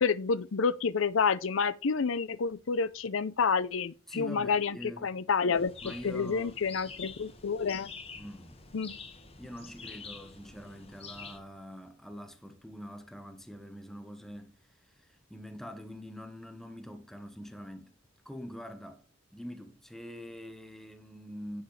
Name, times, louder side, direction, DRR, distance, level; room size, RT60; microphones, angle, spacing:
voice 1, 0.0-7.9 8.7-9.0, left 5 dB, 75° left, 0.6 m, -29 dB
voice 2, 4.1-5.1 5.8-6.6 8.2-8.6 9.4-14.5 14.9-17.9 18.2-19.0 19.3-21.6, equal, ahead, 1.1 m, -44 dB
sound 1, 5.5-11.4, left 5 dB, 30° left, 1.5 m, -47 dB
10.5 x 7.7 x 3.2 m
head